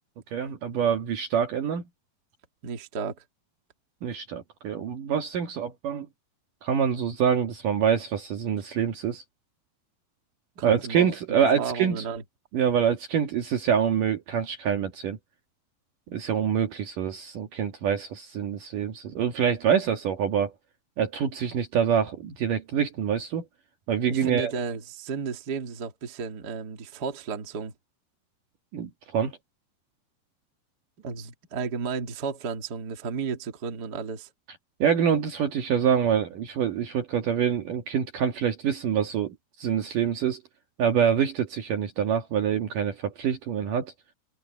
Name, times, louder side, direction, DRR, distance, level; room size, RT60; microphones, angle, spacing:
voice 1, 0.3-1.8 4.0-6.1 6.6-9.2 10.6-12.0 12.5-15.2 16.1-20.5 21.0-23.5 23.9-24.5 28.7-29.4 34.8-40.4 40.8-43.9, right 8 dB, 60° right, 2.7 m, -26 dB
voice 2, 2.6-3.2 10.6-11.1 11.6-12.2 24.1-27.7 31.0-34.3, right 5 dB, 30° right, 2.0 m, -33 dB
omnidirectional pair, 5.1 m